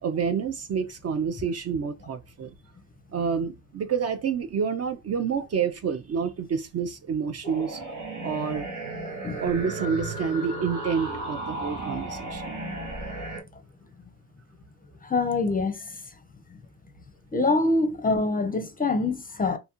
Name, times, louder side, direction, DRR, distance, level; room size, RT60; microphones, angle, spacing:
voice 1, 0.0-2.5 3.1-7.8 8.2-8.7 9.4-12.6, right 6 dB, 40° right, 0.4 m, -28 dB
sound 1, 7.4-13.4, right 2 dB, 85° right, 1.0 m, -34 dB
voice 2, 15.0-16.0 17.3-19.6, left 3 dB, 20° left, 0.5 m, -25 dB
2.6 x 2.2 x 2.8 m
supercardioid pair, 45°, 39 cm